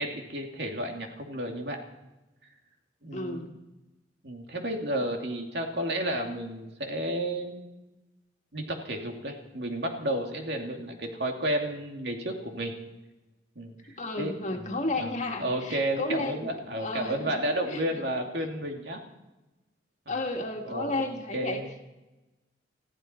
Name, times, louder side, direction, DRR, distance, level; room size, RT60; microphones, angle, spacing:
voice 1, 0.0-1.8 3.0-3.4 4.2-7.6 8.5-12.7 13.6-13.7 14.2-14.3 14.6-19.0 20.1-20.2 20.7-21.0 21.3-21.7, right 1 dB, 60° right, 2 dB, 2.6 m, -32 dB
voice 2, 3.1-3.5 14.0-17.4 17.7-18.0 20.1-21.6, left 2 dB, 40° left, 2 dB, 1.9 m, -33 dB
20.5 x 15.0 x 4.5 m, 1.0 s
head